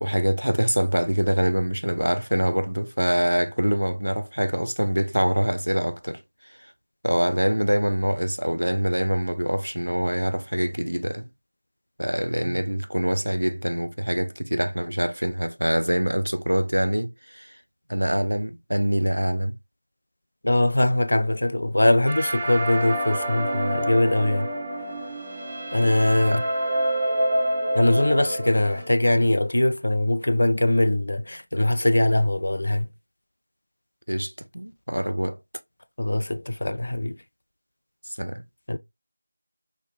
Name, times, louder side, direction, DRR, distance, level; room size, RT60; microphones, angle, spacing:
voice 1, 0.0-6.2 7.0-11.3 12.0-17.6 17.9-19.6 26.3-26.4 34.1-35.4 38.2-38.4, equal, 90° right, 0.5 m, -24 dB
voice 2, 20.4-24.5 25.7-26.4 27.7-32.9 36.0-37.2 38.7-38.8, left 1 dB, 65° left, 0.4 m, -21 dB
sound 1, 22.1-28.9, right 1 dB, 20° right, 1.3 m, -27 dB
5.7 x 2.1 x 3.0 m
figure-of-eight pair, 170°, 0 cm